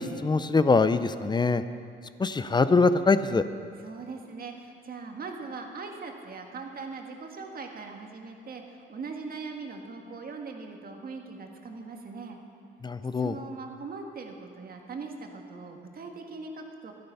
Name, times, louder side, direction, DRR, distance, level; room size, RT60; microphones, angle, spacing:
voice 1, 0.0-1.6 2.2-3.4 12.8-13.4, left 4 dB, 20° left, 12 dB, 0.5 m, -23 dB
voice 2, 3.8-12.4 13.2-16.9, right 4 dB, 50° right, 3 dB, 1.6 m, -40 dB
12.5 x 10.0 x 5.5 m, 2.4 s
cardioid pair, 90°, 20 cm